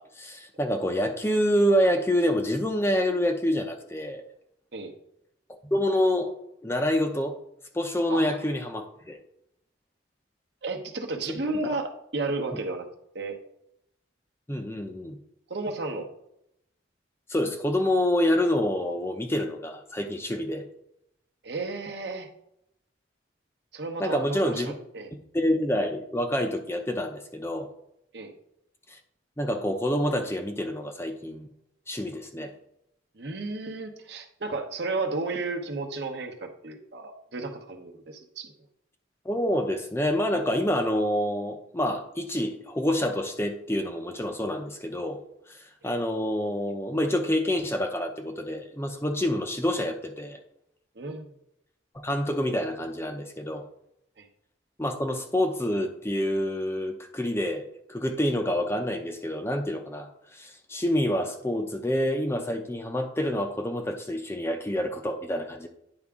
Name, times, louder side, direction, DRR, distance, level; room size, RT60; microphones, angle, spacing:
voice 1, 0.0-4.2 5.5-6.3 6.6-7.4 7.7-9.2 14.5-15.2 17.3-20.6 24.0-24.7 25.3-27.7 28.9-29.0 29.4-31.5 31.9-32.5 39.2-45.2 45.5-50.4 52.0-53.7 54.8-65.7, left 1 dB, 15° left, 4 dB, 0.5 m, -27 dB
voice 2, 10.6-12.9 13.1-13.4 15.5-16.1 21.4-22.3 23.7-25.1 28.1-28.3 33.2-38.5 51.0-51.3 54.2-54.3, right 3 dB, 60° right, 3 dB, 0.9 m, -33 dB
9.7 x 4.8 x 3.6 m, 0.79 s
head